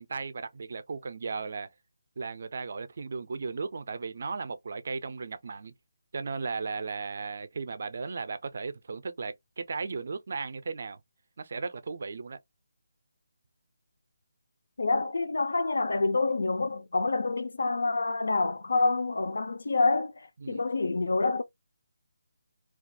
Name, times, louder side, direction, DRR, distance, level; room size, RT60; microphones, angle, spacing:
voice 1, 0.0-1.7 2.2-5.7 6.1-11.0 11.4-12.4 20.4-20.6, right 4 dB, 35° right, 0.4 m, -36 dB
voice 2, 14.8-21.4, left 3 dB, 70° left, 0.4 m, -27 dB
2.3 x 2.2 x 2.5 m
hypercardioid pair, 180°, 0 cm